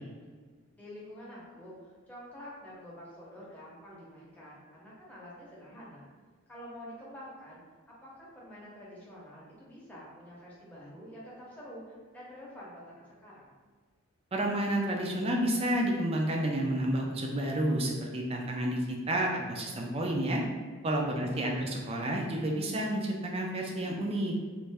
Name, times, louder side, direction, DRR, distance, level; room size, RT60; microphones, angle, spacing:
voice 1, 0.7-6.1 6.5-7.6 8.0-13.5 21.1-21.8, equal, 5° left, -7 dB, 0.8 m, -48 dB
voice 2, 14.3-20.4 20.8-24.4, right 1 dB, 25° right, 0 dB, 0.4 m, -30 dB
3.1 x 2.5 x 3.4 m, 1.5 s
head